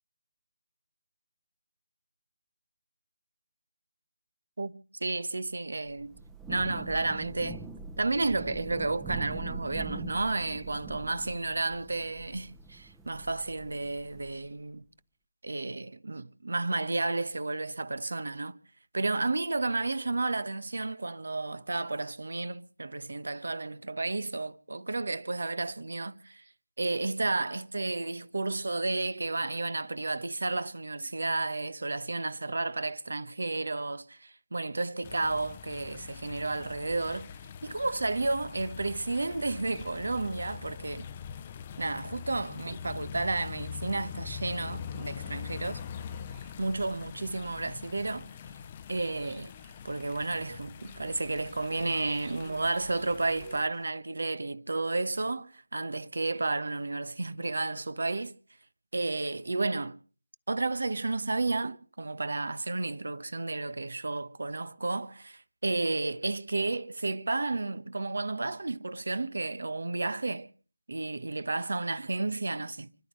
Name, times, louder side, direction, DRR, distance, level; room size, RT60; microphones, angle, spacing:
voice 1, 4.6-6.1 6.5-7.6 8.0-14.8 15.4-18.6 18.9-26.4 26.8-37.3 37.6-41.1 41.8-45.8 46.6-48.3 48.9-49.5 49.8-58.3 58.9-60.0 60.5-70.5 70.9-73.1, right 3 dB, 65° right, 1.2 m, -32 dB
Thunder / Rain, 5.9-14.5, right 4 dB, 5° right, 0.9 m, -43 dB
sound 1, 35.0-53.6, left 7 dB, 30° left, 0.8 m, -43 dB
sound 2, 44.7-53.9, right 7 dB, 20° right, 1.8 m, -60 dB
30.0 x 12.0 x 3.3 m
figure-of-eight pair, 155°, 0 cm